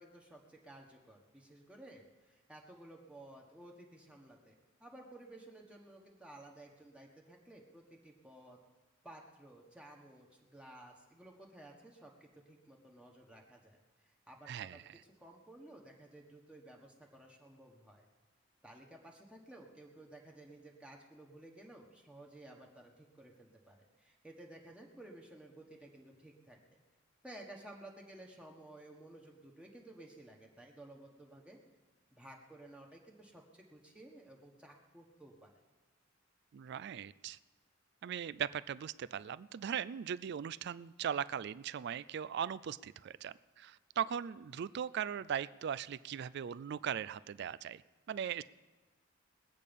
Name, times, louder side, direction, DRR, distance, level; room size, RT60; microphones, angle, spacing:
voice 1, 0.0-4.5 4.8-8.6 9.0-14.8 15.2-18.1 18.6-26.6 27.2-31.6 32.1-35.5, right 1 dB, 5° right, -1 dB, 1.3 m, -55 dB
voice 2, 14.5-14.8 36.5-37.4 38.0-47.8 48.1-48.4, right 8 dB, 55° right, 18 dB, 0.3 m, -39 dB
21.0 x 8.4 x 5.3 m, 1.2 s
head